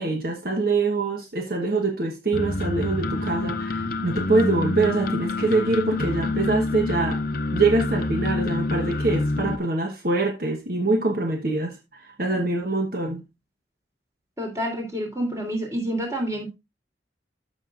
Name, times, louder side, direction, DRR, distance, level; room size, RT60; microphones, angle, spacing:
voice 1, 0.0-7.2 7.5-13.2, right 3 dB, 55° right, 1.2 m, -24 dB
sound 1, 2.3-9.6, left 2 dB, 55° left, 0.7 m, -27 dB
voice 2, 14.4-16.5, equal, 20° right, 3.2 m, -28 dB
13.5 x 6.4 x 2.5 m
head